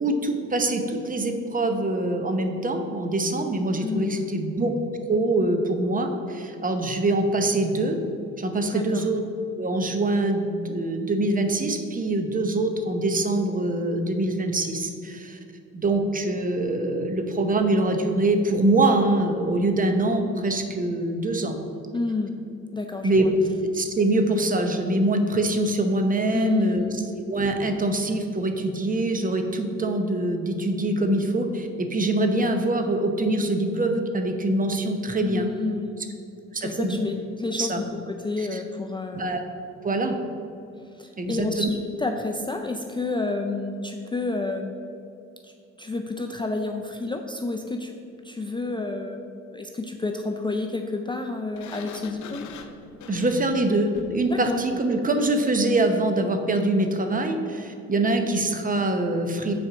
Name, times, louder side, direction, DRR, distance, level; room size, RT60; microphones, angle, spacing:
voice 1, 0.0-4.7 5.1-8.0 8.4-9.2 9.6-15.4 15.7-21.6 23.0-23.3 23.7-26.8 27.2-35.5 36.5-37.0 37.6-37.8 38.4-38.6 39.1-39.4 39.8-40.2 41.2-41.7 53.1-59.5, right 2 dB, 30° right, 5 dB, 0.8 m, -24 dB
voice 2, 3.8-4.3 8.7-9.1 21.9-22.3 22.7-23.2 26.3-26.9 35.2-36.0 36.6-39.4 40.9-44.7 45.4-45.5 45.8-47.9 48.2-52.5 54.3-54.6, left 3 dB, 15° left, 4 dB, 0.4 m, -29 dB
Sliding door, 51.5-54.3, left 6 dB, 70° left, 0.7 m, -43 dB
6.4 x 4.4 x 6.0 m, 2.6 s
cardioid pair, 90°, 30 cm